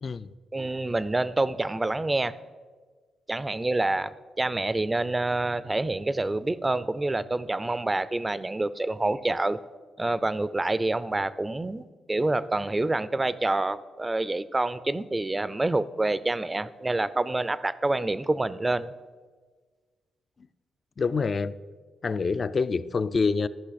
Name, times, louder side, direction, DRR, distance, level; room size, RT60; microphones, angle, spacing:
voice 1, 0.0-0.3 21.0-21.6 22.0-23.5, left 4 dB, 45° left, 15 dB, 0.4 m, -26 dB
voice 2, 0.5-2.3 3.3-4.1 4.4-9.6 10.0-18.9, right 2 dB, 20° right, 16 dB, 0.4 m, -27 dB
14.0 x 5.6 x 4.1 m, 1.4 s
cardioid pair, 65°, 0 cm